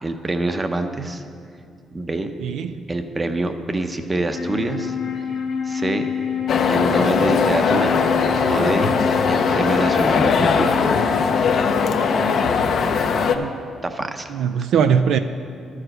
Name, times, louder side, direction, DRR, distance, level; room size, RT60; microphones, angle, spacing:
voice 1, 0.0-1.2 1.9-2.3 2.9-5.3 5.6-6.1 6.7-8.0 8.5-9.0 9.3-10.8 13.8-14.3, right 2 dB, 25° right, 7 dB, 0.7 m, -25 dB
voice 2, 2.4-2.9 13.3-13.5 14.3-15.2, right 7 dB, 80° right, 8 dB, 0.3 m, -20 dB
Wind instrument woodwind instrument, 4.2-13.7, left 7 dB, 80° left, 1.2 m, -27 dB
sound 1, 6.5-13.4, left 5 dB, 60° left, 0.6 m, -20 dB
11.0 x 4.9 x 7.7 m, 2.4 s
cardioid pair, 90°, 0 cm